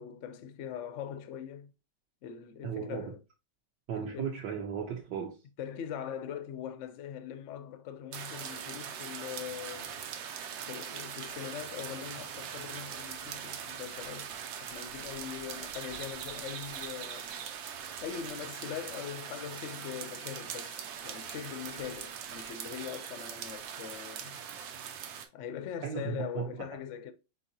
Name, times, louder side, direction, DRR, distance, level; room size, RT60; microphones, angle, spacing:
voice 1, 0.0-1.7 2.2-3.2 4.0-4.3 5.6-9.9 10.7-14.3 14.6-17.3 18.0-24.4 25.3-27.1, left 9 dB, 80° left, 0.6 m, -41 dB
voice 2, 2.6-3.1 3.9-5.4 25.8-26.5, right 8 dB, 70° right, 1.3 m, -36 dB
sound 1, 8.1-25.3, right 8 dB, 90° right, 1.4 m, -41 dB
4.4 x 4.0 x 2.7 m
omnidirectional pair, 2.0 m